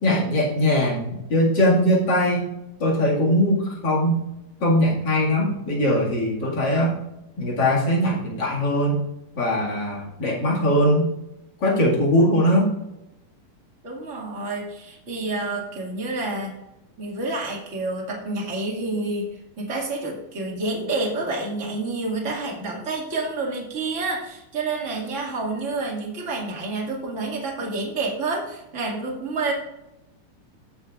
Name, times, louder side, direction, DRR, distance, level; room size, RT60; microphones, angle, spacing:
voice 1, 0.0-2.5 2.8-4.2 4.6-7.0 7.4-9.0 9.4-11.1 11.6-12.7, equal, 35° left, -3 dB, 2.1 m, -21 dB
voice 2, 13.8-16.5 17.0-29.5, right 3 dB, 25° right, -2 dB, 1.7 m, -29 dB
18.0 x 6.9 x 2.4 m, 0.91 s
omnidirectional pair, 4.0 m